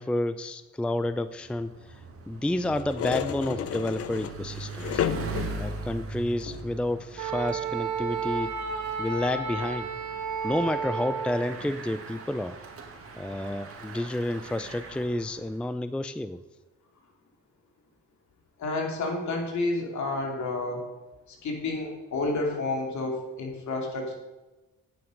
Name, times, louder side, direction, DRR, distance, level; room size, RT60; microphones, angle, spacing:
voice 1, 0.0-1.7 2.3-5.0 5.6-8.5 9.0-9.9 10.4-12.6 13.2-16.4, left 1 dB, 5° left, 12 dB, 0.4 m, -30 dB
Bicycle, 1.0-15.6, right 3 dB, 50° right, 2.1 m, -41 dB
sound 1, 2.6-5.7 6.4-6.8 7.5-7.6, left 10 dB, 50° left, 0.6 m, -32 dB
Wind instrument woodwind instrument, 7.2-11.4, right 5 dB, 75° right, 1.3 m, -32 dB
voice 2, 18.6-20.9 21.3-24.1, left 2 dB, 70° left, 1 dB, 2.9 m, -30 dB
9.4 x 9.3 x 5.2 m, 1.1 s
cardioid pair, 90°, 30 cm